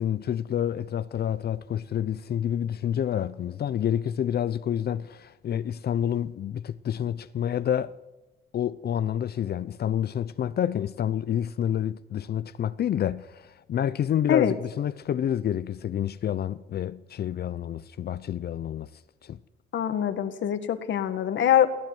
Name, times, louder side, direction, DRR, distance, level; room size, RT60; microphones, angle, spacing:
voice 1, 0.0-7.9 8.5-18.9 19.2-19.4, left 10 dB, 55° left, 0.6 m, -28 dB
voice 2, 19.7-21.7, left 10 dB, 70° left, 1.7 m, -23 dB
16.5 x 16.5 x 9.3 m
cardioid pair, 90°, 20 cm